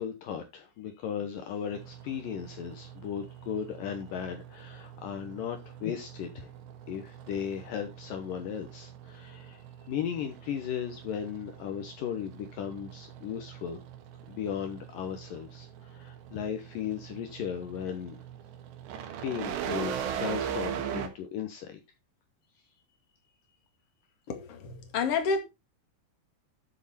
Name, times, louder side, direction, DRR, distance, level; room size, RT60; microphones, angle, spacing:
voice 1, 0.0-6.5 6.9-13.8 14.3-18.2 19.2-21.8, left 8 dB, 80° left, 2.0 m, -36 dB
sound 1, 1.7-21.1, right 9 dB, 70° right, 3.6 m, -41 dB
voice 2, 24.3-25.4, left 5 dB, 45° left, 2.0 m, -29 dB
12.5 x 6.5 x 4.2 m
omnidirectional pair, 5.6 m